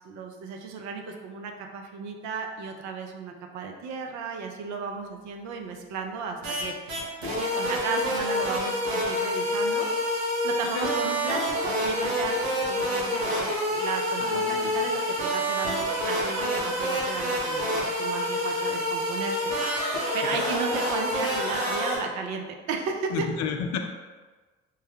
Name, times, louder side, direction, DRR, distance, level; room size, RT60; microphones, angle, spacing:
voice 1, 0.0-10.1 10.4-12.4 12.7-23.3, right 5 dB, 65° right, 3 dB, 0.6 m, -34 dB
sound 1, 6.4-6.6 6.9-22.0, equal, 80° right, 1.0 m, -27 dB
voice 2, 10.6-11.1 14.2-14.8 20.3-20.5 23.1-23.8, left 6 dB, 60° left, 5 dB, 0.5 m, -32 dB
3.2 x 2.2 x 3.4 m, 1.3 s
hypercardioid pair, 55°, 31 cm